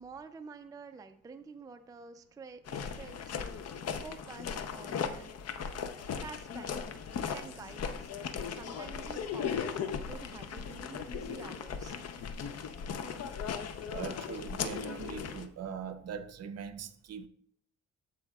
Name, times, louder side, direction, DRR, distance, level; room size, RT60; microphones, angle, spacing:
voice 1, 0.0-3.5 4.0-5.4 6.2-6.9 7.3-12.0, right 4 dB, 10° right, 0.4 m, -49 dB
sound 1, 2.7-15.5, left 7 dB, 55° left, 0.7 m, -37 dB
voice 2, 13.9-17.3, right 7 dB, 55° right, 0.8 m, -41 dB
14.5 x 4.9 x 2.3 m
cardioid pair, 90°, 30 cm